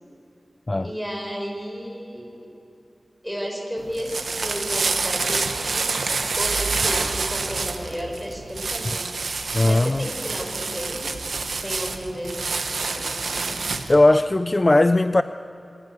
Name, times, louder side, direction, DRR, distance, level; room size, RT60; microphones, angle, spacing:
voice 1, 0.7-2.5 3.2-6.1 6.4-9.0 9.6-11.2 11.6-13.6, equal, ahead, 1 dB, 5.8 m, -33 dB
sound 1, 3.8-14.0, right 4 dB, 90° right, 1.2 m, -27 dB
voice 2, 9.5-10.1 13.9-15.2, left 2 dB, 35° left, 12 dB, 0.4 m, -18 dB
26.5 x 14.0 x 8.4 m, 2.7 s
cardioid pair, 45°, 0 cm